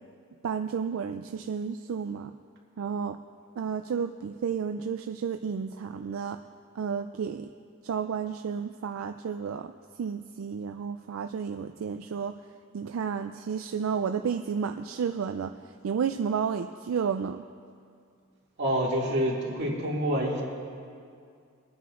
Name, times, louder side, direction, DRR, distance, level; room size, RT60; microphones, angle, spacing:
voice 1, 0.4-2.3 2.8-3.2 3.6-6.4 6.8-7.5 7.8-9.7 10.0-12.4 12.7-15.5 15.8-17.4, right 6 dB, 80° right, 7 dB, 0.4 m, -31 dB
voice 2, 18.6-20.4, equal, 55° right, -4 dB, 2.3 m, -27 dB
24.5 x 9.2 x 2.5 m, 2.3 s
head